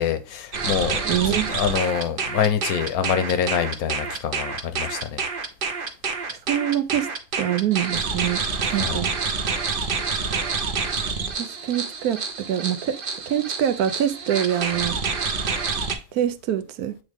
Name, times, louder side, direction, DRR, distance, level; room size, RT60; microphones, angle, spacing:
voice 1, 0.0-5.2 8.7-9.0, left 8 dB, 70° left, 1.3 m, -25 dB
sound 1, 0.5-16.0, right 5 dB, 45° right, 0.9 m, -27 dB
voice 2, 1.0-1.5 6.3-7.1 7.4-8.4 8.7-9.1 11.4-15.0 16.1-17.0, right 10 dB, 80° right, 1.1 m, -25 dB
8.1 x 3.5 x 3.6 m
omnidirectional pair, 1.6 m